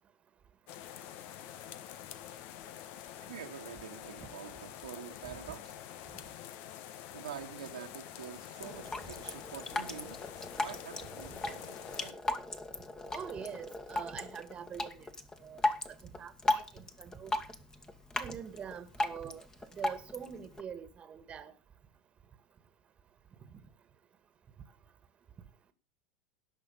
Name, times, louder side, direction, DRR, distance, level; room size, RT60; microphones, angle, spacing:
sound 1, 0.7-12.1, left 11 dB, 55° left, 1.2 m, -47 dB
voice 1, 3.3-5.7 7.1-12.3, right 9 dB, 80° right, 1.9 m, -47 dB
Drip, 8.6-20.6, left 2 dB, 15° left, 1.8 m, -37 dB
voice 2, 13.1-15.1 15.4-15.6 16.2-17.3 18.2-19.4 19.7-21.5, right 7 dB, 30° right, 1.7 m, -44 dB
18.0 x 6.4 x 5.5 m
hypercardioid pair, 90°, 4 cm